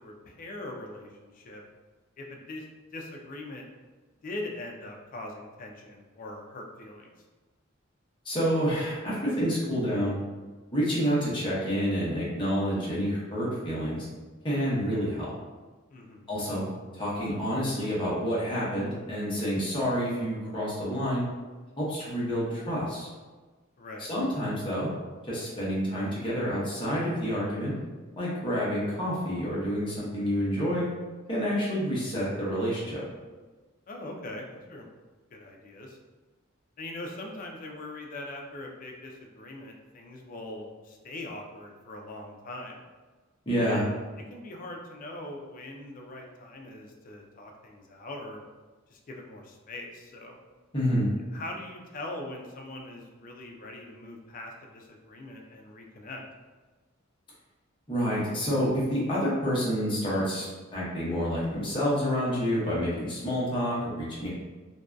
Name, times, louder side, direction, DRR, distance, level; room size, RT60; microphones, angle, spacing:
voice 1, 0.0-1.6 2.2-2.6 2.9-3.7 4.2-7.3 15.9-16.3 23.8-24.1 33.9-34.9 35.3-36.0 36.8-42.8 43.6-44.0 44.3-48.4 48.9-50.4 51.3-56.2, left 2 dB, 40° left, 1 dB, 0.3 m, -41 dB
voice 2, 8.2-10.2 10.7-14.1 14.4-15.3 16.3-16.7 16.9-21.3 21.8-23.1 24.0-24.9 25.2-27.7 28.2-30.9 31.3-33.0 43.5-43.8 50.7-51.1 57.9-60.5 60.7-64.3, equal, 25° left, -7 dB, 0.7 m, -28 dB
2.6 x 2.2 x 2.2 m, 1.3 s
head